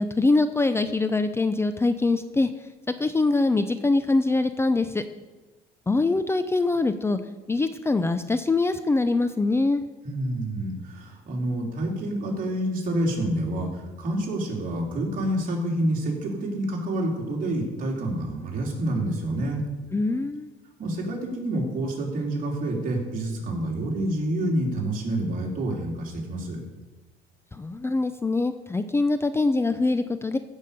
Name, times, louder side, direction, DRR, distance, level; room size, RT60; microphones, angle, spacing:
voice 1, 0.0-2.5 3.0-5.0 5.9-7.2 7.5-9.8 19.9-20.5 27.5-30.4, left 3 dB, 15° left, 10 dB, 0.5 m, -23 dB
voice 2, 10.0-19.6 20.8-26.6, right 1 dB, 55° right, -1 dB, 3.2 m, -28 dB
15.0 x 5.4 x 6.7 m, 1.2 s
cardioid pair, 110°, 17 cm